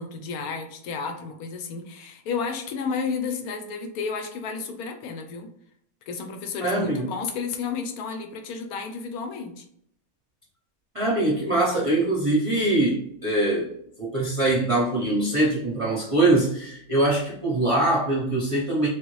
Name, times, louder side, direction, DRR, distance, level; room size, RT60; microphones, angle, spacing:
voice 1, 0.0-5.5 6.1-9.6, left 5 dB, 85° left, 5 dB, 1.1 m, -32 dB
voice 2, 6.6-7.0 10.9-13.7 14.0-18.9, right 2 dB, 40° right, -5 dB, 0.5 m, -23 dB
3.2 x 2.5 x 3.0 m, 0.69 s
omnidirectional pair, 1.5 m